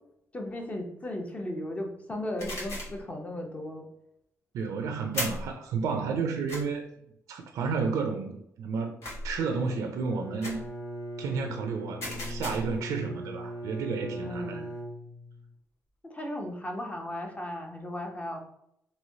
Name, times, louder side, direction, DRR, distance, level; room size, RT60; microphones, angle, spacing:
voice 1, 0.3-3.9 14.2-14.7 16.1-18.4, left 1 dB, 25° left, 2 dB, 0.7 m, -36 dB
sound 1, 2.4-3.0 5.1-5.5 6.5-6.6 9.0-9.4 10.4-10.7 12.0-12.8, left 1 dB, 60° left, 1.2 m, -35 dB
voice 2, 4.5-6.9 7.3-10.6 11.2-14.7, right 5 dB, 80° right, 4 dB, 0.4 m, -31 dB
Bowed string instrument, 10.1-15.5, equal, 75° left, 0.9 m, -39 dB
3.1 x 2.7 x 2.7 m, 0.76 s
cardioid pair, 95°, 6 cm